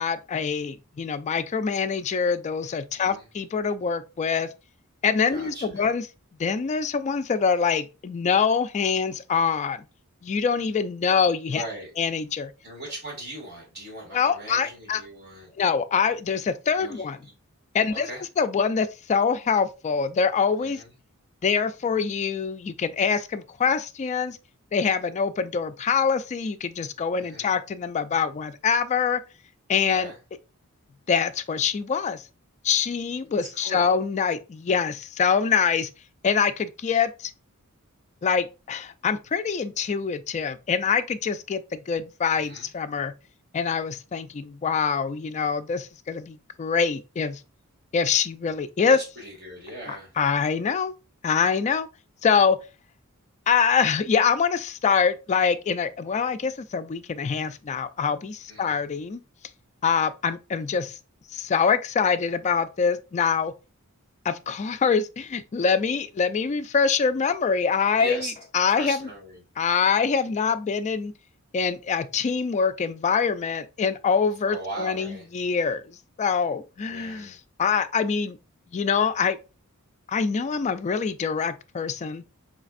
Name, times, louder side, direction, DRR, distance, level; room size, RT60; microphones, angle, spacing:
voice 1, 0.0-4.5 5.0-6.0 6.4-9.9 10.2-11.7 12.0-12.5 14.1-15.0 15.6-17.2 17.7-18.1 18.4-20.8 21.4-24.4 24.7-29.2 29.7-30.1 31.1-32.2 32.6-35.9 36.2-37.3 38.2-43.1 43.5-47.4 47.9-49.0 50.2-50.9 51.2-51.9 52.2-52.6 53.5-59.2 59.8-61.0 61.3-63.5 64.3-69.1 69.6-71.1 71.5-78.4 78.7-79.4 80.1-82.2, left 6 dB, 30° left, 0.3 m, -24 dB
voice 2, 2.9-3.3 5.3-5.9 11.5-11.9 12.6-15.5 16.8-17.3 17.8-18.2 20.6-20.9 27.2-27.5 29.9-30.2 33.5-33.9 42.3-42.7 48.8-50.1 58.5-58.8 68.0-68.3 68.8-69.4 74.4-75.3 76.9-77.4, right 1 dB, 50° right, 2.1 m, -39 dB
4.1 x 3.3 x 2.4 m
head